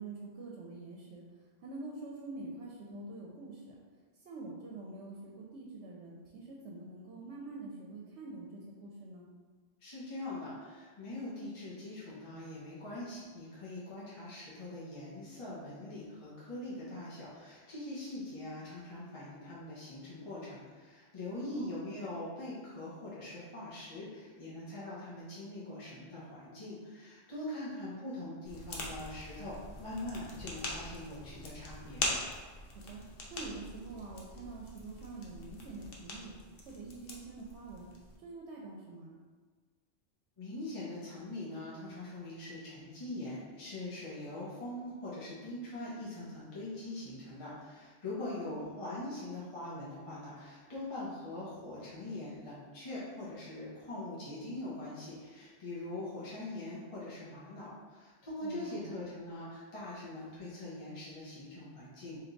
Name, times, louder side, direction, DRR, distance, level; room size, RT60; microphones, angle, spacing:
voice 1, 0.0-3.7 4.2-9.3 21.3-21.8 32.7-33.0 33.3-36.4 36.7-37.9 38.2-39.1 48.4-48.7 58.4-58.9, right 3 dB, 85° right, -3 dB, 0.9 m, -46 dB
voice 2, 9.8-32.1 40.4-62.2, left 1 dB, 35° left, -8 dB, 0.8 m, -42 dB
sound 1, 28.4-38.2, left 2 dB, 60° left, 0.8 m, -42 dB
3.4 x 2.9 x 3.8 m, 1.5 s
omnidirectional pair, 1.1 m